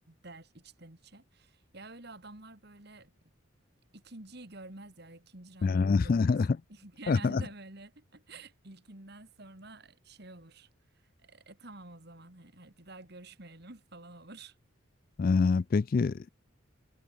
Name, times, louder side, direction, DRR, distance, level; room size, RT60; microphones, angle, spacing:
voice 1, 0.1-3.1 3.9-6.3 6.7-10.7 11.2-14.6, right 2 dB, 50° right, 2.8 m, -49 dB
voice 2, 5.6-6.6 7.1-7.4 15.2-16.3, left 4 dB, 45° left, 0.3 m, -25 dB
head